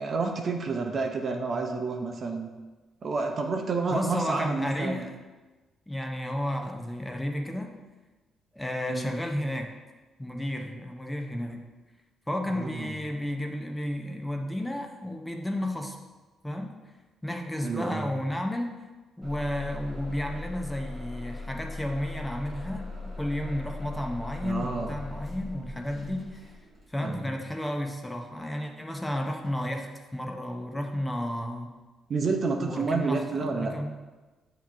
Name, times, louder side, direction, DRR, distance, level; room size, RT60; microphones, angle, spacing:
voice 1, 0.0-2.5 3.0-5.1 8.9-9.1 12.5-13.0 17.6-18.1 24.4-25.0 27.0-27.4 32.1-33.7, right 4 dB, 50° right, 3 dB, 0.7 m, -30 dB
voice 2, 3.9-5.1 5.9-7.7 8.5-9.7 10.2-11.6 12.3-16.0 16.4-16.7 17.2-18.7 19.2-22.9 23.2-26.5 26.9-31.7 32.5-34.0, left 1 dB, 10° left, 2 dB, 0.7 m, -32 dB
Bus / Engine starting, 19.2-27.0, left 3 dB, 30° right, 1.3 m, -39 dB
7.1 x 3.0 x 4.5 m, 1.2 s
cardioid pair, 90°, 0 cm